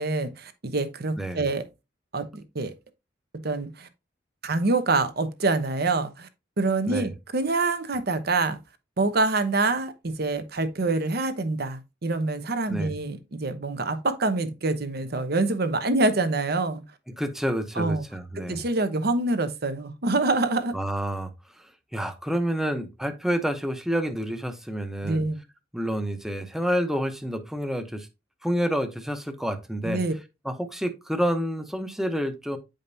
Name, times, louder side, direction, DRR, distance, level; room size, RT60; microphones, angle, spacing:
voice 1, 0.0-1.6 2.1-2.3 2.5-2.7 3.4-3.9 4.4-6.3 6.6-8.6 9.0-16.8 17.8-18.0 18.5-20.7 25.0-25.4 29.8-30.1, right 3 dB, 55° right, 0.9 m, -26 dB
voice 2, 17.2-18.6 20.7-21.3 21.6-25.2 25.7-28.1 28.4-30.0 30.4-32.6, equal, ahead, 0.8 m, -28 dB
8.9 x 5.1 x 2.7 m
head